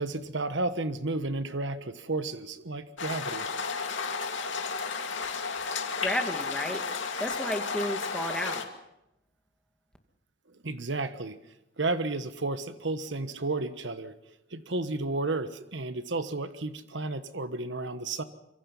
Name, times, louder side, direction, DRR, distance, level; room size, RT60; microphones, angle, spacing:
voice 1, 0.0-3.5 10.6-11.4 11.8-14.1 14.5-18.2, right 2 dB, 70° right, 11 dB, 1.3 m, -32 dB
sound 1, 3.0-8.7, left 5 dB, 85° left, 2.4 m, -33 dB
voice 2, 6.0-6.8 7.2-8.6, equal, 5° left, 4 dB, 2.1 m, -32 dB
25.5 x 24.0 x 5.6 m, 0.86 s
head